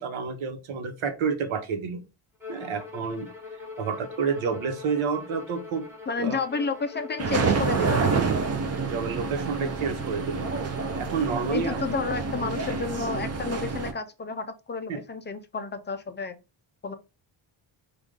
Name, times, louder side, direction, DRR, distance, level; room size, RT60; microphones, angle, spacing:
voice 1, 0.0-2.0 2.5-3.3 3.8-5.9 6.2-6.3 8.8-10.4 11.0-11.8 14.9-15.0, right 6 dB, 80° right, 1.1 m, -29 dB
Bowed string instrument, 2.4-8.1, left 4 dB, 5° right, 1.0 m, -42 dB
voice 2, 6.1-8.3 11.5-16.4 16.8-17.0, left 5 dB, 25° left, 0.3 m, -31 dB
Detroit People Mover, 7.2-13.9, right 4 dB, 30° right, 0.6 m, -28 dB
4.9 x 2.5 x 3.8 m
wide cardioid pair, 170°, 48 cm